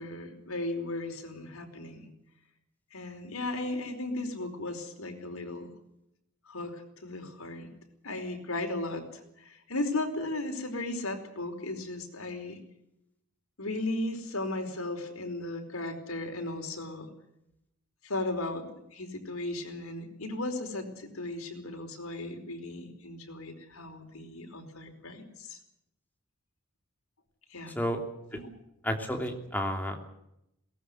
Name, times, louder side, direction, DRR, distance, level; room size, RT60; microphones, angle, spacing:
voice 1, 0.0-2.1 2.9-5.7 6.5-7.7 8.0-12.6 13.6-17.1 18.0-25.6 27.5-27.7 28.3-28.5, left 2 dB, 80° left, 5 dB, 4.9 m, -36 dB
voice 2, 28.8-30.0, equal, 10° left, 3 dB, 3.1 m, -31 dB
22.0 x 19.0 x 7.9 m, 0.82 s
head